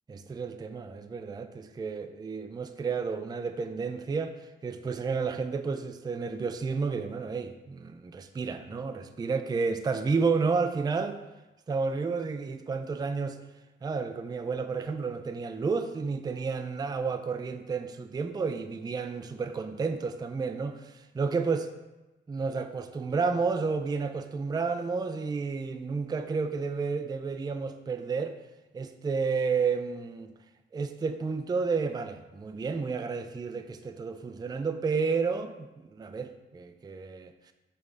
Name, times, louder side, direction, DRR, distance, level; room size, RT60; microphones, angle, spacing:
voice 1, 0.1-11.2 11.7-13.4 13.8-21.7 22.3-28.4 28.7-30.3 30.7-37.3, right 4 dB, 20° right, 8 dB, 0.3 m, -31 dB
9.2 x 3.3 x 3.6 m, 1.0 s
wide cardioid pair, 135°, 21 cm